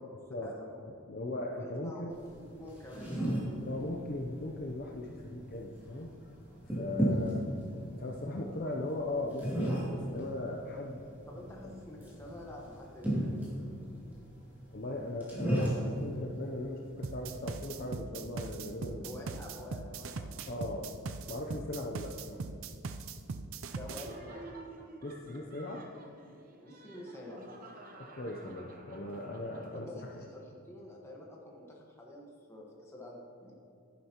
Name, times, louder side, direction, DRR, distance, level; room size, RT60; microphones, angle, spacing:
voice 1, 0.0-1.0 1.5-3.6 10.7-10.8 11.3-13.8 19.0-20.9 23.7-24.5 26.6-27.5 29.7-33.5, left 1 dB, 10° left, -2 dB, 1.3 m, -48 dB
voice 2, 1.1-2.1 3.5-6.1 6.6-7.5 8.0-11.0 11.6-11.7 14.7-19.1 20.5-20.9 21.3-22.4 25.0-25.9 28.0-29.9 30.1-30.2, left 2 dB, 40° left, 0 dB, 0.6 m, -38 dB
sound 1, 2.1-18.0, right 1 dB, 10° right, 2.4 m, -36 dB
sound 2, 17.0-24.1, right 4 dB, 65° right, 0.5 m, -40 dB
Laughter, 23.8-30.2, right 2 dB, 40° right, 0.8 m, -51 dB
11.5 x 10.0 x 3.0 m, 2.6 s
head